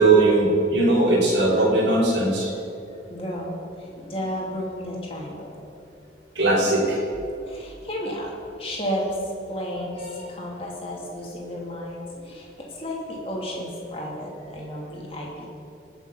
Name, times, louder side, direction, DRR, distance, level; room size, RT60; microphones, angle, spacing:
voice 1, 0.0-2.5 6.4-7.0, right 2 dB, 65° right, -6 dB, 3.8 m, -19 dB
voice 2, 3.1-5.6 7.4-9.2 9.5-15.5, equal, 30° left, -3 dB, 2.7 m, -33 dB
20.0 x 7.0 x 5.6 m, 2.7 s
head